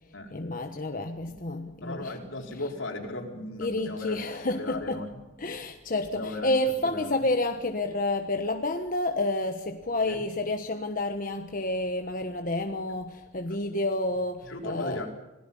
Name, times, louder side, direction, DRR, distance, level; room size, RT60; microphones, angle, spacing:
voice 1, 0.3-2.1 3.6-5.0 5.4-15.1, left 2 dB, 45° left, 5 dB, 1.3 m, -29 dB
voice 2, 1.8-4.2 4.6-5.2 6.1-6.6 6.8-7.2 10.0-10.2 13.5-13.6 14.5-15.1, left 2 dB, 75° left, 1 dB, 4.6 m, -36 dB
27.0 x 17.5 x 5.6 m, 1.0 s
head